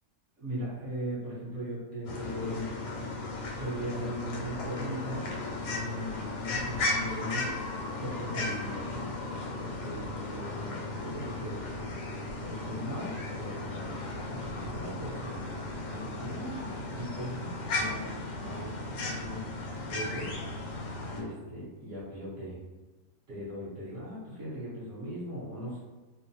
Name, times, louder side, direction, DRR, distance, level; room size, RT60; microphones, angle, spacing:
voice 1, 0.4-2.7 3.6-5.3 5.6-7.5 8.0-9.1 9.6-11.7 12.4-14.0 14.3-15.5 15.8-19.4 19.8-20.3 21.1-22.6 23.3-25.8, equal, 55° right, -9 dB, 1.1 m, -39 dB
sound 1, 2.1-21.2, left 2 dB, 85° left, 1.2 m, -36 dB
3.0 x 2.0 x 2.6 m, 1.2 s
omnidirectional pair, 1.8 m